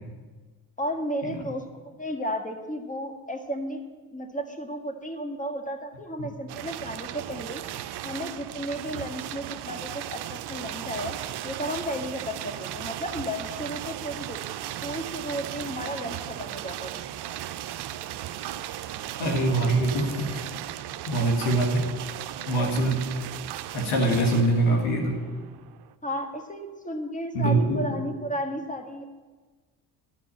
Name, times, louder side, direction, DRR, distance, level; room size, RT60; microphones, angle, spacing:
voice 1, 0.8-3.8 4.1-7.6 8.0-11.1 11.4-14.4 14.8-17.0 26.0-29.0, equal, 15° left, 4 dB, 1.7 m, -33 dB
sound 1, 6.5-25.9, right 12 dB, 55° right, 0.7 m, -36 dB
voice 2, 19.2-20.4 21.1-21.9 22.5-23.1 23.7-25.2 27.3-27.8, right 2 dB, 80° left, 1 dB, 1.8 m, -23 dB
11.0 x 6.0 x 8.6 m, 1.4 s
supercardioid pair, 60°, 47 cm